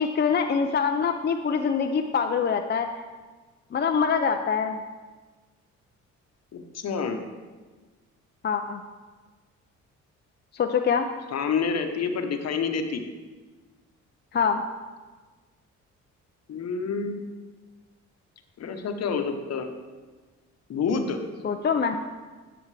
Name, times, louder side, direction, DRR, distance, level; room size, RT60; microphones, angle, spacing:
voice 1, 0.0-2.9 3.7-4.8 8.4-8.8 10.5-11.1 14.3-14.6 21.4-22.0, left 6 dB, 35° left, 5 dB, 0.5 m, -24 dB
voice 2, 6.5-7.2 11.3-13.0 16.5-17.2 18.6-19.7 20.7-21.2, left 5 dB, 55° left, 6 dB, 1.0 m, -28 dB
11.0 x 7.0 x 3.3 m, 1.3 s
cardioid pair, 90°, 30 cm